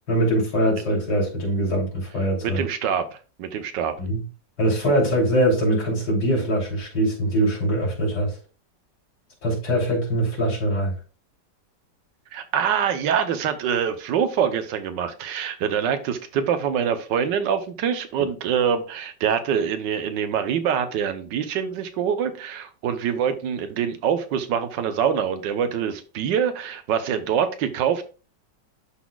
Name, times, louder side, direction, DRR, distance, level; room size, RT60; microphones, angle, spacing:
voice 1, 0.1-2.6 4.0-4.3 4.6-8.4 9.4-10.9, right 1 dB, 70° left, 3.7 m, -22 dB
voice 2, 2.4-3.9 12.3-28.0, right 8 dB, 80° right, 1.4 m, -25 dB
12.0 x 4.1 x 2.3 m
omnidirectional pair, 1.9 m